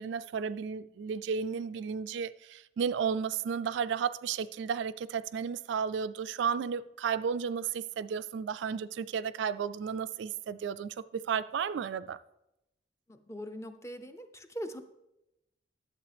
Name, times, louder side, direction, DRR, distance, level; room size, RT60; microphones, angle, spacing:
voice 1, 0.0-12.2, right 6 dB, 75° right, 0.3 m, -33 dB
voice 2, 13.1-14.8, equal, 15° left, 0.5 m, -41 dB
11.5 x 7.6 x 3.4 m
head